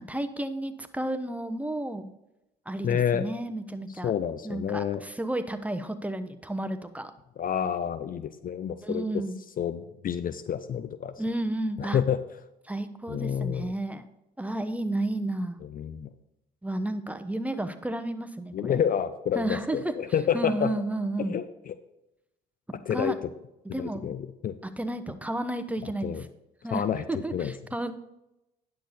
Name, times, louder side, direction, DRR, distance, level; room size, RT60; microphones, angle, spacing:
voice 1, 0.0-2.1 2.7-4.1 4.4-7.1 8.8-9.4 11.2-12.0 12.7-14.0 14.4-15.6 16.6-18.8 19.3-19.9 20.3-21.4 22.7-23.2 23.7-24.1 24.6-26.2 26.6-26.8 27.1-27.9, right 1 dB, 5° right, 9 dB, 0.9 m, -32 dB
voice 2, 2.8-3.3 4.0-5.0 7.4-9.0 9.6-11.1 11.8-12.2 13.1-13.8 15.6-16.1 18.5-20.7 21.2-21.8 22.9-23.2 23.8-24.5 25.8-26.2 26.7-27.0 27.3-27.5, left 8 dB, 40° left, 13 dB, 0.5 m, -29 dB
10.0 x 6.7 x 4.2 m, 0.90 s
hypercardioid pair, 55°, 21 cm